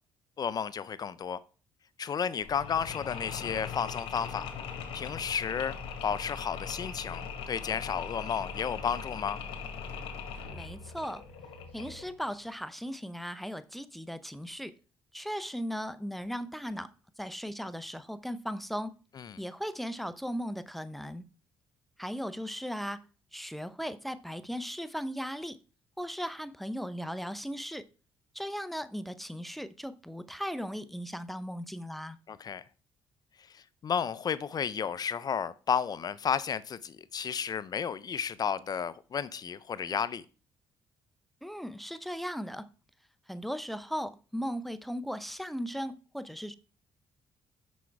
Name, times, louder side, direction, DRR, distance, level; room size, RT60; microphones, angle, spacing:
voice 1, 0.4-1.4 2.0-4.5 4.9-5.7 6.0-9.4 19.2-19.4 32.3-32.6 33.8-40.2, left 7 dB, 45° left, 0.5 m, -32 dB
Mechanisms, 2.4-12.2, left 6 dB, 80° left, 1.4 m, -40 dB
voice 2, 10.5-11.2 11.7-14.7 15.1-16.9 17.2-18.9 19.4-21.2 22.0-23.0 23.3-25.6 26.0-27.9 28.3-32.2 41.4-42.7 43.3-46.5, equal, ahead, 0.6 m, -37 dB
6.3 x 5.8 x 4.6 m
supercardioid pair, 75°, 9 cm